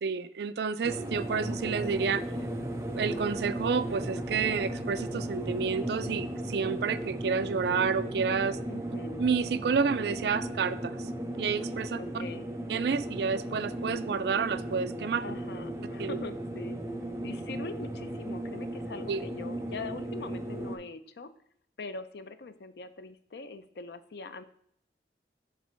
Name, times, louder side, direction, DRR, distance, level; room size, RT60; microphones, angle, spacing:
voice 1, 0.0-2.2 2.9-8.6 9.2-11.1 11.4-12.0 12.7-15.2 16.0-16.2 19.1-19.2, right 5 dB, 70° right, 13 dB, 0.4 m, -29 dB
sound 1, 0.8-20.8, right 1 dB, 15° right, 0.6 m, -36 dB
voice 2, 8.7-9.3 12.0-12.5 15.2-16.8 17.2-21.3 21.8-24.4, left 3 dB, 70° left, 11 dB, 0.5 m, -42 dB
7.4 x 3.4 x 4.4 m, 0.67 s
head